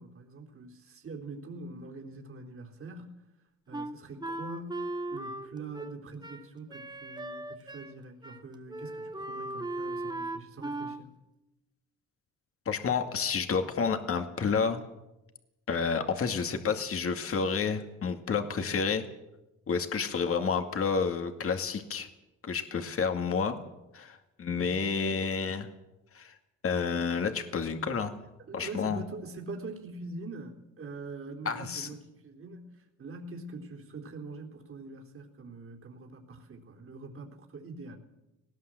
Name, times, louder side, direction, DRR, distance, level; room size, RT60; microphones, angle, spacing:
voice 1, 0.0-3.3 3.7-4.8 5.1-11.1 24.5-24.9 28.4-38.0, right 3 dB, 45° right, 1 dB, 3.8 m, -44 dB
Wind instrument woodwind instrument, 3.7-8.0 8.2-8.4 8.7-11.0, right 2 dB, 15° right, 1.4 m, -37 dB
voice 2, 12.7-14.8 15.7-19.0 19.7-22.1 22.4-23.6 23.9-25.7 26.1-26.3 26.6-28.2 28.5-29.0 31.5-31.9, left 5 dB, 50° left, 6 dB, 2.3 m, -30 dB
19.0 x 18.5 x 7.8 m, 0.98 s
cardioid pair, 90°, 30 cm